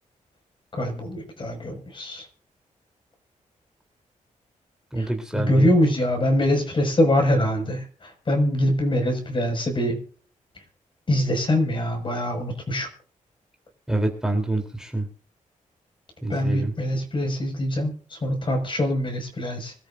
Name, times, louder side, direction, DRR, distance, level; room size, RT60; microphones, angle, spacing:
voice 1, 0.8-2.2 5.0-10.0 11.1-12.9 16.3-19.7, left 1 dB, 35° left, 4 dB, 6.0 m, -24 dB
voice 2, 4.9-5.7 13.9-15.1 16.2-16.7, right 2 dB, 5° right, 3 dB, 3.5 m, -26 dB
25.5 x 13.5 x 2.6 m, 0.43 s
cardioid pair, 105°, 14 cm